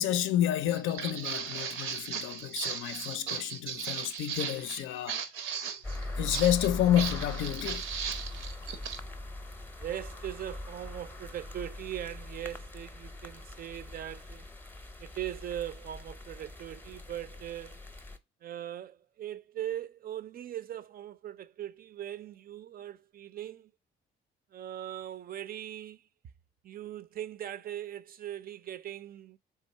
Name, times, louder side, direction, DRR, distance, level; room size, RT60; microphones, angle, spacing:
voice 1, 0.0-5.2 6.2-8.1, left 11 dB, 90° left, 0.5 m, -30 dB
Walk footsteps, 0.7-9.0, right 7 dB, 80° right, 0.6 m, -37 dB
sound 1, 5.8-18.2, left 2 dB, 10° left, 0.6 m, -41 dB
voice 2, 9.8-14.5 15.0-17.8 18.4-23.7 24.5-26.0 26.6-29.4, right 11 dB, 50° right, 0.4 m, -40 dB
3.7 x 3.0 x 4.1 m
cardioid pair, 90°, 20 cm